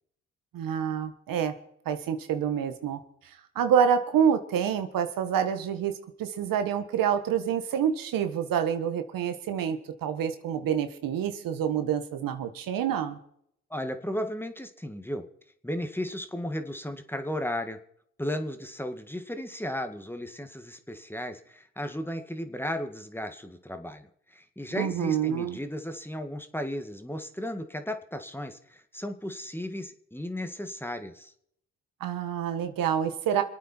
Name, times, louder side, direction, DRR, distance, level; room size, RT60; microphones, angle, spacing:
voice 1, 0.5-1.5 1.8-3.0 3.5-5.9 6.2-13.2 24.7-25.6 32.0-33.4, right 8 dB, 75° right, 8 dB, 1.6 m, -27 dB
voice 2, 13.7-15.2 15.6-17.8 18.2-31.3, left 1 dB, 5° left, 7 dB, 2.0 m, -35 dB
26.5 x 9.1 x 4.6 m, 0.70 s
supercardioid pair, 50°, 34 cm